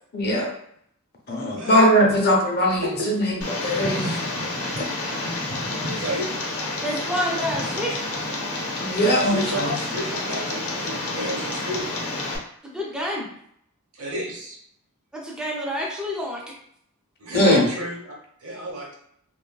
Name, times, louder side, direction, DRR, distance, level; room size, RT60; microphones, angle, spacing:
voice 1, 0.1-0.5 1.3-4.2 8.8-9.7 17.3-17.6, equal, 45° left, 0 dB, 0.6 m, -20 dB
Tick, 3.4-12.4, left 2 dB, 85° left, 0.7 m, -29 dB
voice 2, 5.8-6.3 9.2-11.9 14.0-14.6 17.2-18.1 18.4-19.0, right 1 dB, 75° right, -3 dB, 0.9 m, -30 dB
voice 3, 6.8-8.0 12.6-13.3 15.1-16.5, equal, 5° right, -3 dB, 0.4 m, -28 dB
3.0 x 2.3 x 2.2 m, 0.69 s
head